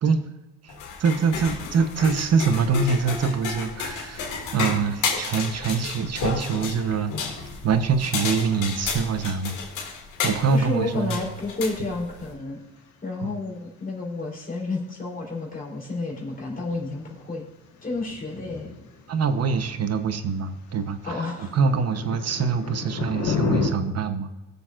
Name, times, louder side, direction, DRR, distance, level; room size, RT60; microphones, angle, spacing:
sound 1, 0.7-12.3, left 5 dB, 90° left, 2.0 m, -32 dB
voice 1, 1.0-7.4 7.6-9.6 10.2-11.2 13.2-13.4 19.1-24.3, right 5 dB, 55° right, 9 dB, 1.0 m, -24 dB
rolling thunder and rain, 3.9-23.7, left 5 dB, 70° left, 1.5 m, -37 dB
voice 2, 10.5-12.6 13.0-17.5 17.8-18.7 21.0-21.5, left 3 dB, 30° left, -4 dB, 3.6 m, -31 dB
20.0 x 6.8 x 2.5 m, 1.0 s
cardioid pair, 90°, 30 cm